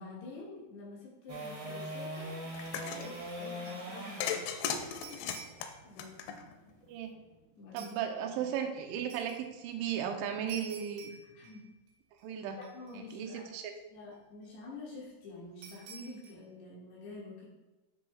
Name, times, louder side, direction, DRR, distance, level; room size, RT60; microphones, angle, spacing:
voice 1, 0.0-4.4 5.8-6.4 7.6-8.0 8.3-8.5 11.2-11.7 12.6-13.5 13.9-17.5, left 2 dB, 70° left, -6 dB, 3.7 m, -48 dB
sound 1, 1.3-7.4 14.0-14.1, equal, 40° right, 2.0 m, -42 dB
sound 2, 2.1-2.3 2.6-3.9 4.2-5.8 7.8-8.0 9.1-9.4 10.5-11.9 12.2-12.3 12.6-13.4 15.6-16.3, right 5 dB, 70° right, 3.6 m, -52 dB
sound 3, 2.5-3.1 4.2-6.7, left 8 dB, 90° left, 3.0 m, -36 dB
voice 2, 7.7-11.1 12.2-12.6 12.9-13.6, right 8 dB, 85° right, 5 dB, 3.1 m, -36 dB
12.0 x 6.4 x 2.4 m, 1.1 s
omnidirectional pair, 5.3 m